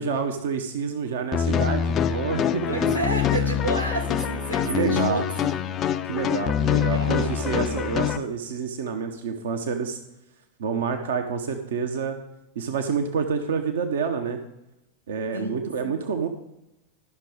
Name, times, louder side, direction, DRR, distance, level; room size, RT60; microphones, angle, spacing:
voice 1, 0.0-3.0 4.6-5.2 6.1-10.0 10.6-12.2 12.6-14.4 15.1-16.3, right 6 dB, 60° right, 6 dB, 0.8 m, -28 dB
sound 1, 1.3-8.2, left 8 dB, 30° left, 0.4 m, -25 dB
voice 2, 2.7-5.5 6.6-7.4 15.3-16.0, right 2 dB, 85° right, 3 dB, 1.0 m, -31 dB
12.0 x 6.0 x 5.0 m, 0.89 s
figure-of-eight pair, 90°, 0 cm